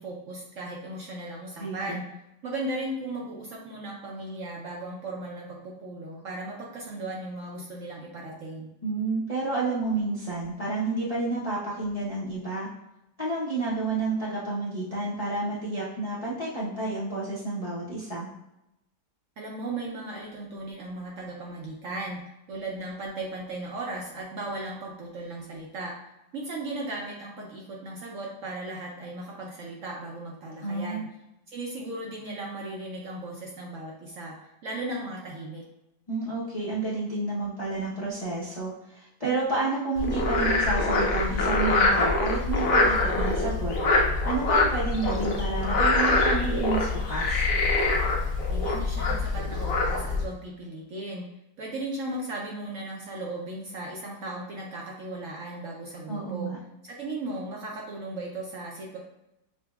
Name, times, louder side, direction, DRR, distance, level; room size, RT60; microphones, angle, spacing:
voice 1, 0.0-2.1 2.4-8.7 19.4-22.2 22.5-25.9 26.3-31.1 31.5-35.7 48.5-51.3 51.6-56.5 56.8-59.0, right 2 dB, 65° right, -2 dB, 0.8 m, -36 dB
voice 2, 1.6-2.0 8.8-12.7 13.2-18.3 30.6-31.0 36.1-43.7 44.2-47.5 56.1-56.6, right 3 dB, 40° left, -9 dB, 0.5 m, -30 dB
Frog, 40.0-50.2, left 2 dB, 65° left, 1.0 m, -24 dB
6.6 x 2.2 x 2.3 m, 0.89 s
omnidirectional pair, 1.8 m